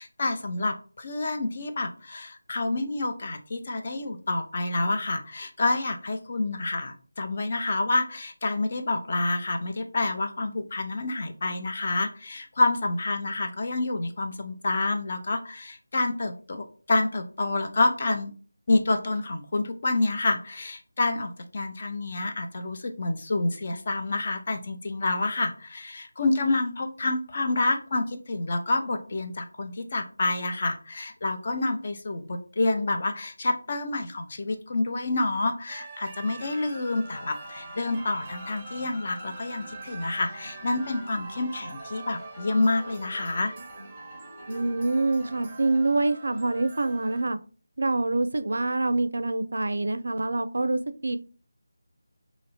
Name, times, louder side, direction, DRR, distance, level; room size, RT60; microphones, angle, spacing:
voice 1, 0.0-18.3 18.7-43.5, left 2 dB, 40° left, 5 dB, 0.6 m, -28 dB
sound 1, 35.7-47.2, right 3 dB, 25° right, 0.6 m, -44 dB
sound 2, 37.1-45.8, equal, 20° left, 1.1 m, -46 dB
voice 2, 44.5-47.4 47.8-51.2, right 2 dB, 70° right, 11 dB, 0.4 m, -26 dB
2.9 x 2.6 x 4.2 m, 0.38 s
figure-of-eight pair, 165°, 0 cm